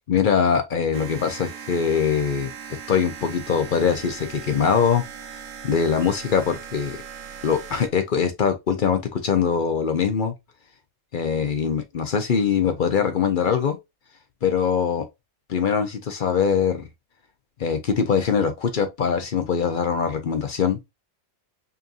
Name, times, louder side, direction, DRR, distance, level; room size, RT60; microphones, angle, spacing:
voice 1, 0.1-2.5 2.9-5.0 5.6-7.0 7.4-10.3 11.1-13.8 14.4-15.1 15.5-16.9 17.6-20.9, left 6 dB, 55° left, 0.6 m, -22 dB
sound 1, 0.9-7.9, right 7 dB, 65° right, 1.0 m, -39 dB
5.3 x 2.6 x 2.4 m
omnidirectional pair, 1.5 m